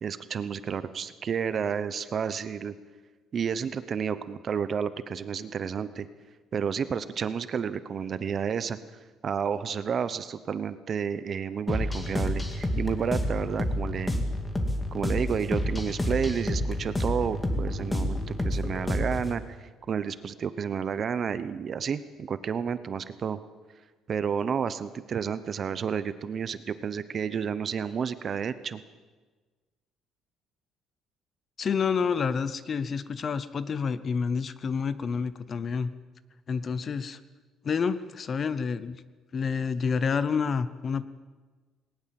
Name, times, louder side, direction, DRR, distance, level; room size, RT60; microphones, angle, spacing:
voice 1, 0.0-2.7 3.3-6.1 6.5-8.8 9.2-14.2 14.9-23.4 24.1-28.8, right 7 dB, 35° right, 13 dB, 0.9 m, -31 dB
sound 1, 11.7-19.3, left 1 dB, 10° left, 2.2 m, -29 dB
voice 2, 31.6-35.9 36.5-37.2 37.6-39.0 39.3-41.1, left 6 dB, 30° left, 15 dB, 0.8 m, -28 dB
19.0 x 19.0 x 7.7 m, 1.3 s
cardioid pair, 160°, 0 cm